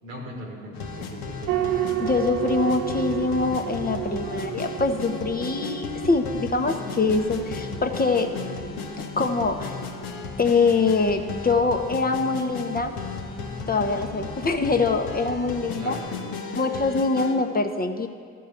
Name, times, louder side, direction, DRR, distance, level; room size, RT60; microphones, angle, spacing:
voice 1, 0.0-1.5 15.7-16.4, equal, 85° right, 0 dB, 1.3 m, -38 dB
sound 1, 0.7-17.4, left 5 dB, 60° left, 1.0 m, -35 dB
sound 2, 1.5-16.3, right 13 dB, 55° right, 0.6 m, -35 dB
voice 2, 2.0-8.4 9.2-9.8 10.4-13.0 13.7-16.0 16.6-18.1, left 3 dB, 25° left, 6 dB, 0.8 m, -24 dB
12.0 x 4.6 x 8.2 m, 2.2 s
figure-of-eight pair, 40°, 39 cm